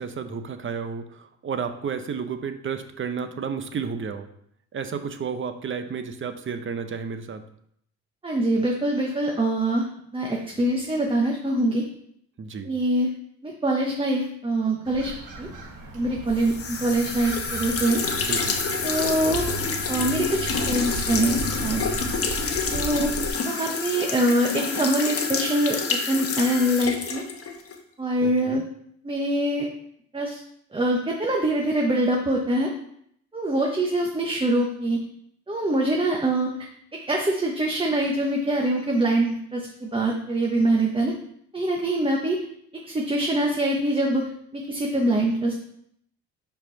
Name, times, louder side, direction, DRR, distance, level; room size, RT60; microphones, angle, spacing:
voice 1, 0.0-4.3 4.7-7.4 12.4-12.7 18.3-18.6 28.2-28.6, right 6 dB, 40° right, 9 dB, 0.8 m, -32 dB
voice 2, 8.2-9.9 10.1-11.8 12.6-13.1 13.4-15.1 15.4-15.5 15.9-18.0 18.8-19.5 19.9-21.9 22.7-23.1 23.4-27.2 28.0-28.6 29.0-29.7 30.1-30.4 30.7-32.7 33.3-35.0 35.5-41.1 41.5-42.4 42.9-45.6, right 1 dB, 15° right, 0 dB, 1.0 m, -24 dB
sound 1, 14.9-23.3, right 3 dB, 85° right, 1.3 m, -35 dB
sound 2, 16.4-27.8, left 5 dB, 50° left, 1.2 m, -28 dB
5.4 x 4.6 x 5.6 m, 0.70 s
cardioid pair, 90°, 30 cm